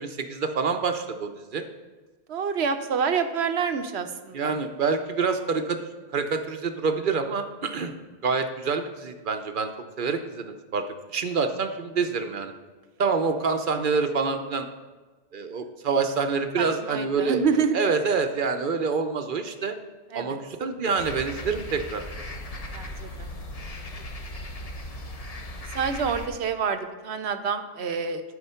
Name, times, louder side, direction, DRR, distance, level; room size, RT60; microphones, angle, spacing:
voice 1, 0.0-1.6 4.3-5.8 6.1-7.9 8.2-9.7 10.0-10.8 11.1-12.5 13.0-14.7 15.3-17.4 17.7-19.8 20.1-22.0, right 5 dB, 50° right, 6 dB, 0.8 m, -26 dB
voice 2, 2.3-4.5 16.6-17.7 20.1-20.4 22.7-23.3 25.7-28.2, right 6 dB, 70° right, 8 dB, 1.0 m, -27 dB
sound 1, 21.0-26.3, left 1 dB, 35° left, 0.9 m, -37 dB
12.5 x 4.3 x 5.6 m, 1.3 s
omnidirectional pair, 1.2 m